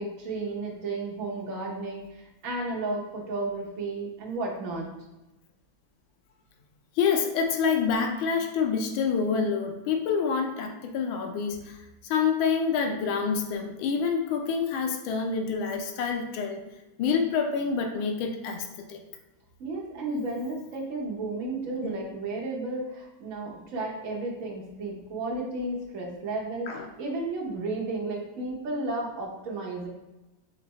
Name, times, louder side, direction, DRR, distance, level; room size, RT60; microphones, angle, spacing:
voice 1, 0.0-4.9 19.6-29.9, right 2 dB, 50° right, -2 dB, 1.1 m, -33 dB
voice 2, 7.0-11.8 12.0-16.6 17.0-19.0 21.8-21.9 26.7-26.9, left 6 dB, 80° left, 4 dB, 1.4 m, -27 dB
3.8 x 3.3 x 4.1 m, 1.0 s
omnidirectional pair, 2.2 m